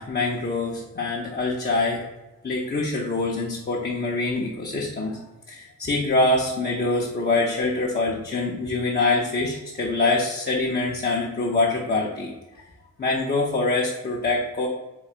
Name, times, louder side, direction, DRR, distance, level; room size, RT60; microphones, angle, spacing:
voice 1, 0.0-2.0 2.4-5.2 5.5-12.3 13.0-14.7, left 3 dB, 25° left, -3 dB, 0.6 m, -24 dB
3.8 x 2.6 x 4.4 m, 1.0 s
cardioid pair, 115°, 37 cm